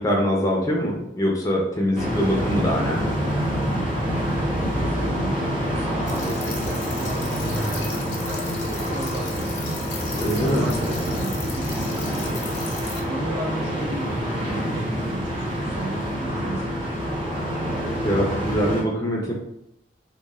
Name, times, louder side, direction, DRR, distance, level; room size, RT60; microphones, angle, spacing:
voice 1, 0.0-3.1 10.2-10.7 18.0-19.3, equal, 20° left, -1 dB, 0.4 m, -23 dB
sound 1, 1.9-18.8, equal, 30° right, 0.7 m, -26 dB
voice 2, 4.1-7.2 7.5-9.6 10.1-12.5 13.1-16.9, right 1 dB, 70° right, -2 dB, 0.7 m, -35 dB
sound 2, 6.1-13.0, left 5 dB, 75° left, 0.5 m, -38 dB
3.0 x 2.1 x 2.2 m, 0.82 s
head